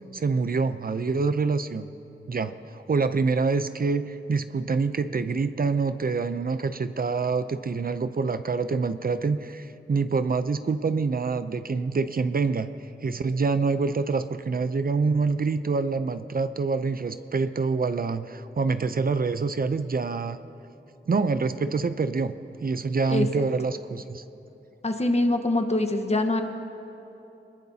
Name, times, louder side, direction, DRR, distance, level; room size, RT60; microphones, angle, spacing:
voice 1, 0.1-1.9 2.3-12.7 13.0-20.4 21.1-22.3 22.6-24.2, right 4 dB, 50° right, 11 dB, 0.6 m, -26 dB
voice 2, 23.1-23.4 24.8-26.4, left 2 dB, 35° left, 6 dB, 1.3 m, -24 dB
23.5 x 20.5 x 2.8 m, 2.9 s
wide cardioid pair, 65°, 20 cm